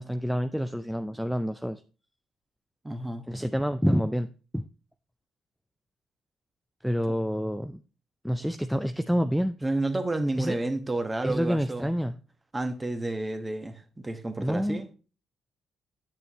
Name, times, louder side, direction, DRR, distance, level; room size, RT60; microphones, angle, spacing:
voice 1, 0.0-1.8 3.3-4.6 6.8-7.8 8.2-9.5 10.4-10.6 11.2-12.2 14.4-14.8, equal, ahead, 0.4 m, -28 dB
voice 2, 2.8-3.2 9.6-11.9 12.5-14.8, right 2 dB, 15° right, 1.1 m, -30 dB
8.2 x 6.9 x 2.9 m
cardioid pair, 90°, 0 cm